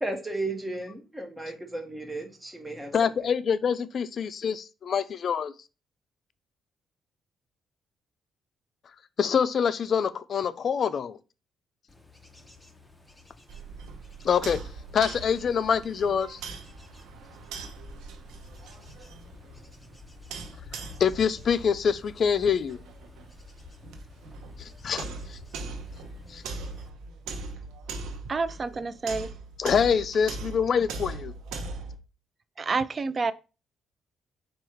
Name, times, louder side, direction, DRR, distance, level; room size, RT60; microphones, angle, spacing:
voice 1, 0.0-3.1, right 2 dB, 10° right, 1.1 m, -34 dB
voice 2, 2.9-5.5 9.2-11.2 14.2-14.6 14.9-16.4 20.7-22.8 24.6-25.0 25.3-25.4 26.3-26.4 29.6-31.3, left 7 dB, 55° left, 0.4 m, -25 dB
Bird / Insect / Wind, 11.9-26.9, left 4 dB, 10° left, 0.8 m, -50 dB
sound 1, 13.5-32.0, right 3 dB, 90° right, 0.7 m, -40 dB
voice 3, 28.3-29.3 32.6-33.3, right 4 dB, 35° right, 0.3 m, -28 dB
4.5 x 2.3 x 4.5 m
cardioid pair, 90°, 0 cm